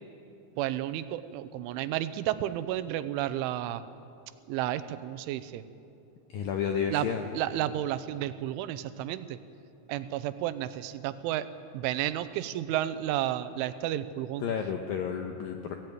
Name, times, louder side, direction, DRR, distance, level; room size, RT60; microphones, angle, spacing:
voice 1, 0.6-3.8 4.5-5.6 6.9-7.1 7.3-9.4 9.9-11.5 11.7-14.4, right 13 dB, 85° right, 13 dB, 3.2 m, -32 dB
voice 2, 6.3-7.3 14.4-15.8, left 7 dB, 80° left, 4 dB, 2.1 m, -31 dB
22.0 x 16.0 x 9.3 m, 2.6 s
omnidirectional pair, 5.5 m